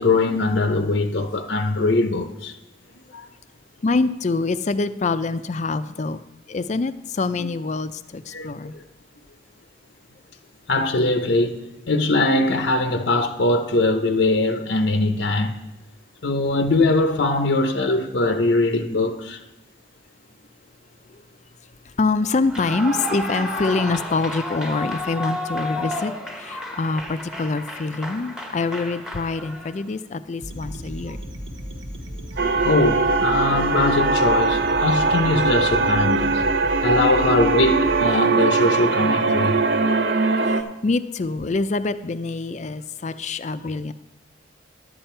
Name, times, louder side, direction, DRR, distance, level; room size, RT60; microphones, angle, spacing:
voice 1, 0.0-2.5 2.9-3.2 8.3-8.8 10.7-15.5 16.2-19.4 32.6-36.4 36.8-39.6, left 2 dB, 80° left, 0.8 m, -21 dB
voice 2, 3.8-6.2 6.5-8.8 21.1-21.2 22.0-26.1 26.4-31.2 35.4-36.0 40.4-43.9, left 3 dB, 40° left, 0.4 m, -25 dB
Clapping / Cheering / Applause, 22.4-29.8, left 1 dB, 5° right, 0.9 m, -32 dB
sound 1, 30.4-38.1, right 1 dB, 90° right, 1.5 m, -34 dB
sound 2, 32.4-40.6, right 3 dB, 60° right, 0.6 m, -21 dB
11.0 x 8.8 x 4.4 m
head